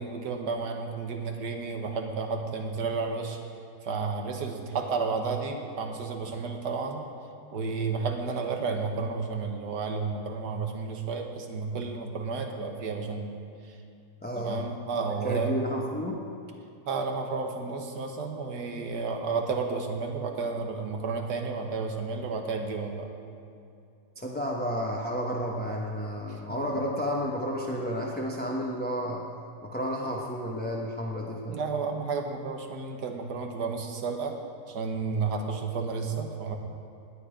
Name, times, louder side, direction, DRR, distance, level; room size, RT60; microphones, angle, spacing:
voice 1, 0.0-3.4 3.8-7.1 7.5-13.8 14.4-15.6 16.9-23.1 26.3-26.8 31.5-34.4 34.7-36.6, right 4 dB, 75° right, 4 dB, 1.8 m, -32 dB
voice 2, 14.2-14.7 15.2-16.2 24.2-29.2 29.6-31.6, equal, 5° left, -2 dB, 0.8 m, -31 dB
18.5 x 10.0 x 5.1 m, 2.5 s
omnidirectional pair, 1.8 m